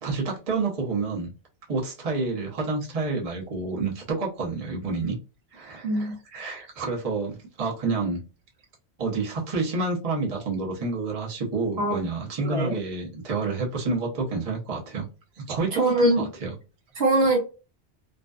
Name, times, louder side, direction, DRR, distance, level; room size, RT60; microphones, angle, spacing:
voice 1, 0.0-1.3 1.7-5.2 5.5-8.2 9.0-15.1 15.3-16.6, right 3 dB, 35° right, -2 dB, 0.8 m, -29 dB
voice 2, 5.8-6.2 11.8-12.0 12.4-12.8 15.7-16.2 17.0-17.4, right 2 dB, 65° right, 1 dB, 1.0 m, -22 dB
2.5 x 2.2 x 2.2 m, 0.32 s
omnidirectional pair, 1.1 m